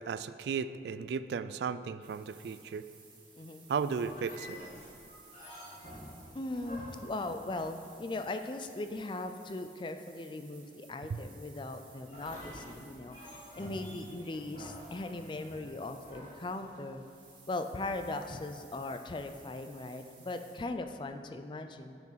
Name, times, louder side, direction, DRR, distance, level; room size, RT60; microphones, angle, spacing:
voice 1, 0.0-2.8 3.7-4.6 11.1-11.2, right 6 dB, 70° right, 13 dB, 0.3 m, -35 dB
sound 1, 2.0-20.6, right 4 dB, 30° right, 1.5 m, -59 dB
sound 2, 4.0-8.3 12.0-17.1, equal, 45° left, 2.2 m, -49 dB
voice 2, 6.3-17.0 17.5-22.0, left 2 dB, 25° left, 8 dB, 0.4 m, -39 dB
7.4 x 6.0 x 5.6 m, 2.5 s
head